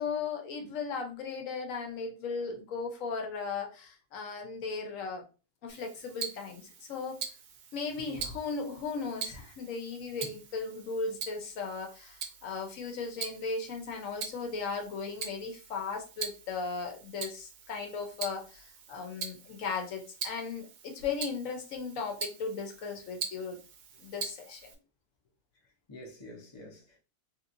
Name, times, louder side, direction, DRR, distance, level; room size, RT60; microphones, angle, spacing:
voice 1, 0.0-5.2 5.6-7.2 7.7-23.6 24.0-24.7, left 4 dB, 65° left, 1.0 m, -37 dB
Tick-tock, 5.7-24.7, right 6 dB, 85° right, 1.1 m, -43 dB
voice 2, 8.0-8.4 10.2-10.4 25.5-27.0, left 1 dB, 40° left, 0.4 m, -49 dB
2.9 x 2.9 x 2.5 m
omnidirectional pair, 1.6 m